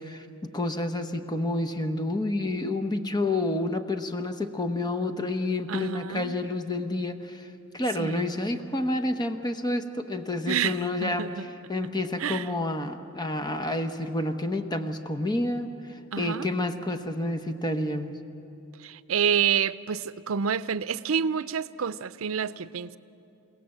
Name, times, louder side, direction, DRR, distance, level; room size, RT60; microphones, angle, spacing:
voice 1, 0.0-11.3 11.7-18.2, left 2 dB, 20° left, 8 dB, 1.0 m, -29 dB
voice 2, 5.7-6.3 8.0-8.2 10.5-11.4 12.2-12.5 16.1-16.5 18.8-23.0, right 7 dB, 70° right, 16 dB, 0.5 m, -28 dB
29.5 x 17.5 x 7.8 m, 2.9 s
head